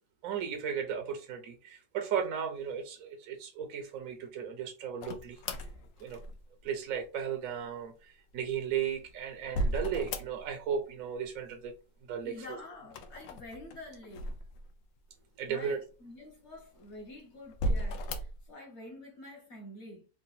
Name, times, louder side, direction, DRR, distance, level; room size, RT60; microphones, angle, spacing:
voice 1, 0.2-5.4 6.0-6.2 6.6-11.7 12.1-12.3 15.4-15.8, right 7 dB, 65° right, 0.9 m, -35 dB
sound 1, 5.0-6.7 8.5-10.7 11.0-11.7 12.8-15.0 15.6-15.7 16.5-17.0 17.5-18.5, equal, 80° left, 0.7 m, -36 dB
voice 2, 12.2-14.3 15.5-20.1, left 1 dB, 45° left, 1.0 m, -48 dB
3.7 x 2.2 x 4.0 m
omnidirectional pair, 2.0 m